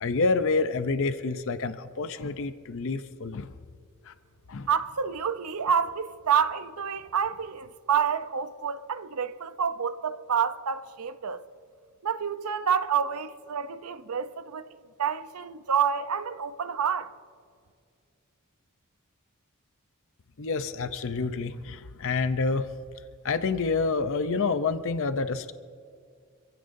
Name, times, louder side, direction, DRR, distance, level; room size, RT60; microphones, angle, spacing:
voice 1, 0.0-3.5 4.1-4.2 4.5-4.7 20.4-22.7 23.2-25.5, left 4 dB, 65° left, 0.7 m, -28 dB
voice 2, 4.7-11.4 12.0-14.7 15.0-17.1, right 7 dB, 90° right, 0.7 m, -28 dB
26.5 x 16.0 x 2.7 m
head